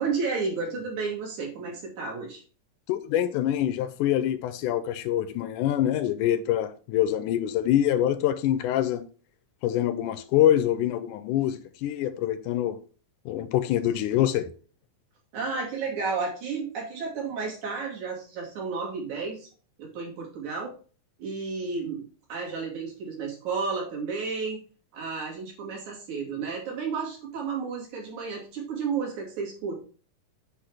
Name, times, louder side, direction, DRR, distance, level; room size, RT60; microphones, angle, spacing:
voice 1, 0.0-2.4 15.3-19.5 19.8-20.7 21.2-22.0 22.3-24.6 24.9-29.8, right 4 dB, 65° right, 3.5 m, -32 dB
voice 2, 2.9-9.0 9.6-12.8 13.3-14.5, left 11 dB, 85° left, 2.1 m, -25 dB
7.9 x 3.4 x 4.8 m
omnidirectional pair, 3.6 m